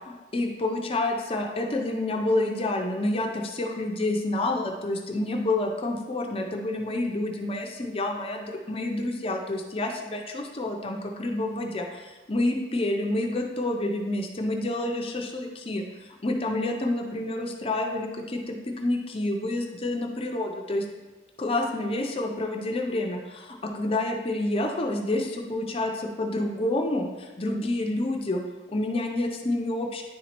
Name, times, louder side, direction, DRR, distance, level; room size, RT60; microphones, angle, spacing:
voice 1, 0.1-20.8 21.4-28.4 28.7-30.0, left 2 dB, 30° left, 2 dB, 0.5 m, -28 dB
10.0 x 4.1 x 2.9 m, 1.3 s
head